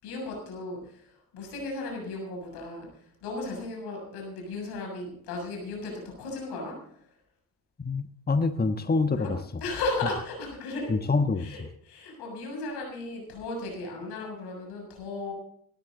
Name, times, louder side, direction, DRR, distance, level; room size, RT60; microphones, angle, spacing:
voice 1, 0.0-6.7 9.1-9.3 9.6-10.9 11.4-15.3, left 2 dB, 80° left, 1 dB, 7.0 m, -35 dB
voice 2, 7.8-9.3 10.9-11.5, left 3 dB, 25° left, 9 dB, 1.3 m, -25 dB
18.0 x 13.0 x 3.9 m, 0.64 s
hypercardioid pair, 45°, 39 cm